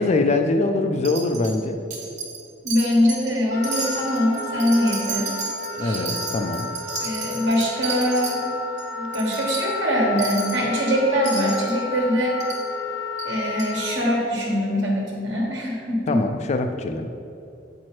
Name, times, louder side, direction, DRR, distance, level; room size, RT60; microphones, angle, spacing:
voice 1, 0.0-1.8 5.8-6.7 16.1-17.1, left 2 dB, 35° left, 6 dB, 0.3 m, -23 dB
Wind chime, 1.0-1.6 1.9-2.4 2.7-3.3 3.6-8.4 8.8-8.9 9.1-9.6 10.2-10.6 11.2-11.7 12.4-12.6 13.2-13.3 13.6-13.7, right 4 dB, 40° right, 1.1 m, -32 dB
voice 2, 2.6-5.3 5.8-6.0 7.0-8.5 9.0-12.4 13.2-16.2, equal, 70° right, -2 dB, 1.3 m, -23 dB
Wind instrument woodwind instrument, 3.5-14.2, left 4 dB, 85° left, 1.1 m, -32 dB
8.2 x 4.5 x 3.1 m, 2.7 s
head